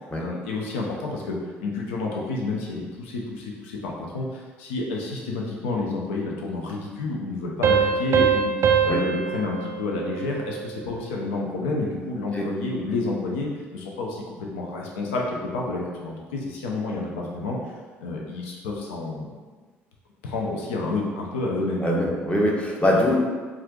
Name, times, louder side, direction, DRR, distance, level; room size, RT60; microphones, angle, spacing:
voice 1, 0.2-17.6 18.0-19.3 20.2-21.9, left 3 dB, 70° left, -2 dB, 0.5 m, -30 dB
Piano, 7.6-10.9, right 7 dB, 40° right, 0.3 m, -23 dB
voice 2, 21.8-23.2, left 1 dB, 15° left, -2 dB, 0.7 m, -22 dB
4.3 x 2.5 x 2.3 m, 1.4 s
figure-of-eight pair, 50°, 7 cm